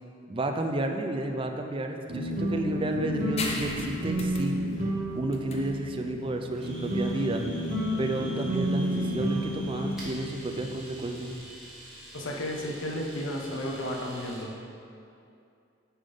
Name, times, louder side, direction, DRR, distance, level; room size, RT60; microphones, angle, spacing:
voice 1, 0.3-4.6 5.1-7.4 8.0-11.3, right 2 dB, 25° right, 4 dB, 0.4 m, -31 dB
sound 1, 2.1-11.3, equal, 40° right, 1.4 m, -31 dB
sound 2, 3.4-10.5, left 2 dB, 30° left, 0.7 m, -40 dB
Domestic sounds home sounds, 6.5-14.5, right 1 dB, ahead, 1.5 m, -47 dB
voice 2, 12.1-14.5, left 1 dB, 75° left, -1 dB, 0.9 m, -33 dB
8.7 x 3.6 x 5.4 m, 2.5 s
head